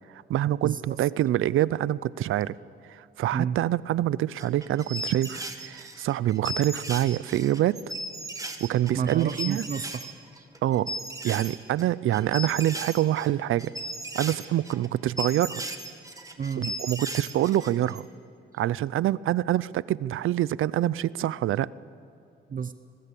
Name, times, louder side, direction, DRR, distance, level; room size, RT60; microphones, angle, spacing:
voice 1, 0.1-2.6 2.9-7.8 8.6-9.7 10.6-10.9 11.2-13.7 14.1-15.6 16.6-18.1 18.5-21.7, right 13 dB, 80° right, 20 dB, 0.5 m, -26 dB
voice 2, 0.6-1.0 3.3-3.6 8.9-10.5 16.4-16.7 22.5-22.7, right 7 dB, 40° right, 11 dB, 0.7 m, -31 dB
sound 1, 4.4-10.1 10.4-11.8 12.1-18.0, right 1 dB, 15° right, 2.1 m, -36 dB
24.5 x 20.5 x 8.4 m, 2.6 s
cardioid pair, 100°, 21 cm